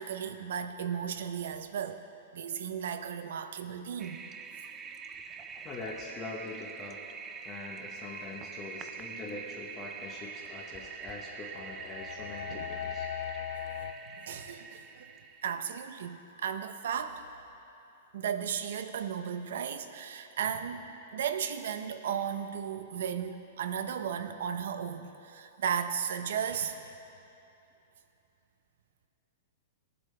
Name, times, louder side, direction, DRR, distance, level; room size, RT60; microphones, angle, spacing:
voice 1, 0.0-2.0 2.3-4.2 12.5-12.7 13.8-15.1 15.4-17.3 18.1-27.0, right 8 dB, 70° right, 9 dB, 0.7 m, -35 dB
Toilet flush, 4.0-15.5, right 6 dB, 15° right, 0.4 m, -44 dB
voice 2, 5.6-7.0 7.4-13.1, left 3 dB, 20° left, -3 dB, 1.0 m, -43 dB
sound 1, 8.0-8.6 10.5-13.9, left 10 dB, 90° left, 0.4 m, -40 dB
19.0 x 7.9 x 3.3 m, 2.9 s
hypercardioid pair, 160°, 0 cm